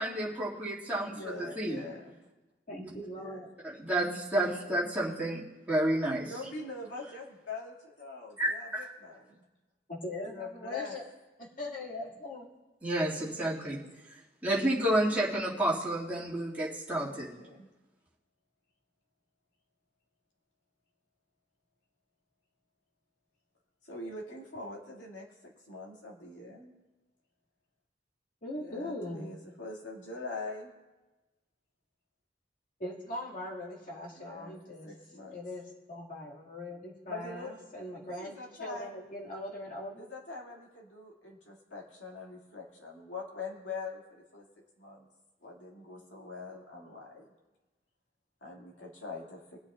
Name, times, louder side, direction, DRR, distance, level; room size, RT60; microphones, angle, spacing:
voice 1, 0.0-1.8 3.6-6.3 8.4-8.8 12.8-13.8 14.4-17.3, right 1 dB, 10° right, -9 dB, 2.3 m, -30 dB
voice 2, 1.0-2.2 3.2-3.4 6.2-9.4 10.2-10.9 13.7-13.9 17.1-17.7 23.8-25.3 25.7-26.7 28.6-30.7 34.2-35.4 37.1-37.5 38.0-39.0 40.0-44.4 44.8-45.1 45.4-47.3 48.4-49.6, left 3 dB, 85° left, -2 dB, 2.4 m, -43 dB
voice 3, 2.7-3.5 9.9-11.0 11.4-12.5 28.4-29.2 32.8-34.9 35.3-38.3 38.6-40.0, left 1 dB, 45° left, -3 dB, 2.3 m, -40 dB
22.5 x 8.6 x 2.5 m, 1.1 s
head